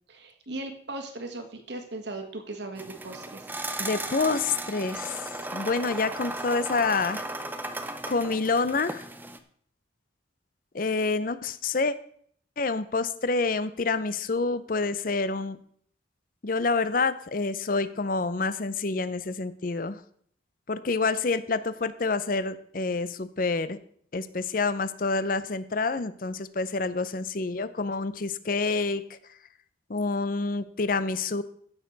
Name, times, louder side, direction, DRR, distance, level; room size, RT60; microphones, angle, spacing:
voice 1, 0.1-3.5, right 2 dB, 65° right, 5 dB, 1.6 m, -38 dB
sound 1, 2.8-9.4, right 2 dB, 10° right, 0.6 m, -36 dB
voice 2, 3.8-7.3 8.1-9.1 10.7-11.9 12.6-15.6 16.4-20.0 20.7-23.8 24.1-29.2 29.9-31.4, left 3 dB, 45° left, 14 dB, 0.6 m, -28 dB
15.5 x 6.6 x 4.0 m, 0.62 s
head